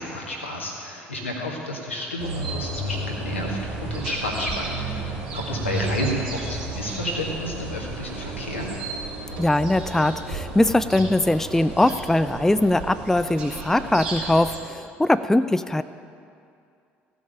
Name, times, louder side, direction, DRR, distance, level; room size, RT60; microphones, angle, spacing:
voice 1, 0.0-8.7, left 1 dB, 85° left, -2 dB, 1.8 m, -31 dB
sound 1, 2.2-14.6, right 2 dB, 65° right, 2.8 m, -33 dB
voice 2, 9.4-15.8, left 1 dB, 5° left, 13 dB, 0.4 m, -21 dB
16.0 x 6.2 x 8.8 m, 2.4 s
figure-of-eight pair, 55°, 6 cm